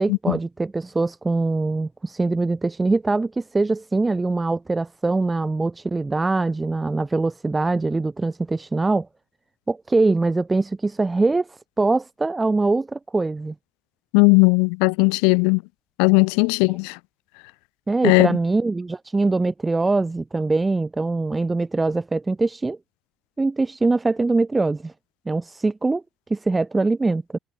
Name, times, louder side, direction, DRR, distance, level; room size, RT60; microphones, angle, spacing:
voice 1, 0.0-9.1 9.7-13.5 17.9-22.8 23.4-24.9 25.3-26.0 26.3-27.4, right 3 dB, 20° right, 2.1 m, -23 dB
voice 2, 14.1-15.6 16.0-17.0 18.0-18.3, left 40 dB or more, 80° left, 1.3 m, -17 dB
hypercardioid pair, 60°, 0 cm